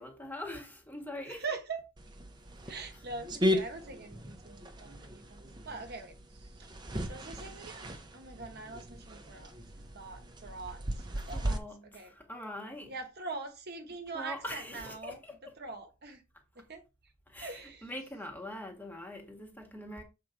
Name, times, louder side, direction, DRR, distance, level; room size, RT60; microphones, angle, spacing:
voice 1, 0.0-1.4 11.3-12.9 14.1-15.3 17.3-20.0, left 1 dB, 10° left, 1.5 m, -43 dB
voice 2, 1.3-1.8 2.7-6.7 7.1-9.5 9.9-12.1 12.9-15.2 15.6-16.2 16.7-16.8 17.4-17.9, right 4 dB, 50° right, 1.1 m, -43 dB
sound 1, 2.0-11.6, equal, 20° right, 0.9 m, -37 dB
7.3 x 3.8 x 4.6 m
head